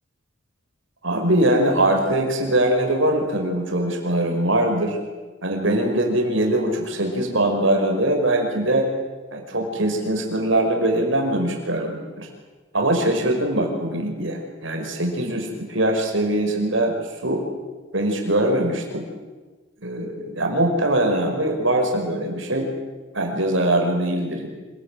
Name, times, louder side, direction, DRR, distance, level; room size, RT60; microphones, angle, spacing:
voice 1, 1.0-5.0 5.4-8.9 9.3-12.3 12.7-16.9 17.2-17.4 17.9-19.1 19.8-22.7 23.1-24.5, right 1 dB, 70° right, 2 dB, 5.5 m, -22 dB
27.0 x 21.5 x 9.2 m, 1.3 s
head